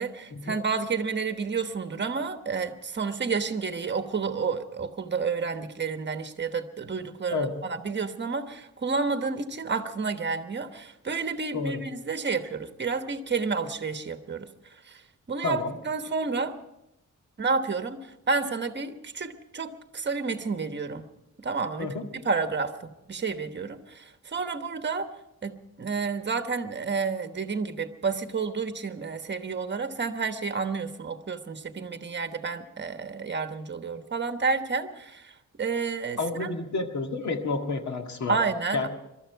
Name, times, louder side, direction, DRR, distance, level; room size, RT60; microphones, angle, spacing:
voice 1, 0.0-14.5 14.8-15.0 15.3-16.6 17.4-21.1 21.4-21.9 22.2-25.1 25.4-36.5 38.3-38.9, right 4 dB, 35° right, 8 dB, 1.2 m, -30 dB
voice 2, 15.4-15.8 21.8-22.0 36.2-38.4 38.7-38.9, left 3 dB, 70° left, 4 dB, 1.9 m, -30 dB
23.0 x 13.0 x 4.7 m, 0.87 s
wide cardioid pair, 125°, 30 cm